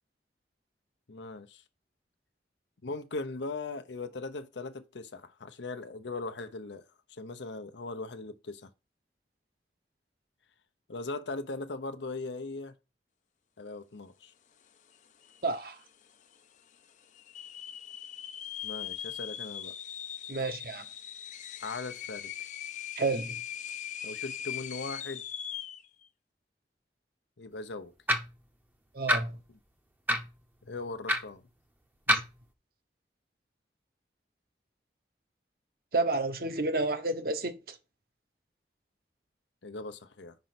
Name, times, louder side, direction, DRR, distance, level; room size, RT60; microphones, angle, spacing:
voice 1, 1.1-1.6 2.8-6.8 7.1-8.7 10.9-12.7 13.6-14.3 18.6-19.7 21.6-22.3 24.0-25.2 27.4-27.9 29.5-29.6 30.6-31.4 39.6-40.4, left 3 dB, 90° left, 0.8 m, -39 dB
sound 1, 14.9-15.0 15.2-15.8 16.3-16.4 17.1-25.9, left 10 dB, 45° left, 0.5 m, -40 dB
voice 2, 15.4-15.8 20.3-20.8 23.0-23.3 28.9-29.4 32.1-32.2 35.9-37.8, right 3 dB, 55° right, 1.0 m, -30 dB
sound 2, 28.1-28.4 29.1-29.2 30.1-30.3 31.1-31.2 32.1-32.3, equal, 10° right, 0.7 m, -26 dB
5.3 x 5.3 x 5.9 m
head